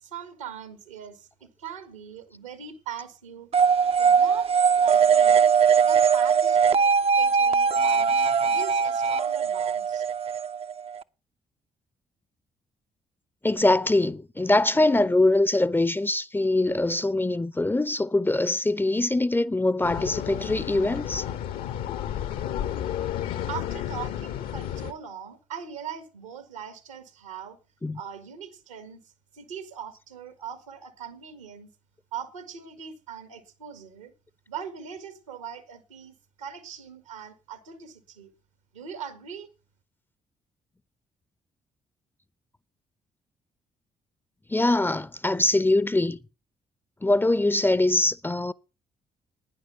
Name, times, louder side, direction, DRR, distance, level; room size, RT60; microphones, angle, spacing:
voice 1, 0.0-3.5 4.0-4.5 4.8-5.5 5.8-10.1 23.5-27.6 27.9-29.0 29.3-31.7 32.1-34.1 34.5-38.3 38.7-39.5, right 7 dB, 80° right, 1.7 m, -40 dB
sound 1, 3.5-11.0, right 6 dB, 35° right, 0.6 m, -21 dB
voice 2, 13.4-21.2 27.8-28.0 44.5-46.2 47.0-48.5, left 2 dB, 10° left, 0.7 m, -23 dB
sound 2, 19.8-24.9, left 10 dB, 60° left, 1.2 m, -32 dB
11.5 x 9.9 x 5.7 m
figure-of-eight pair, 40°, 17 cm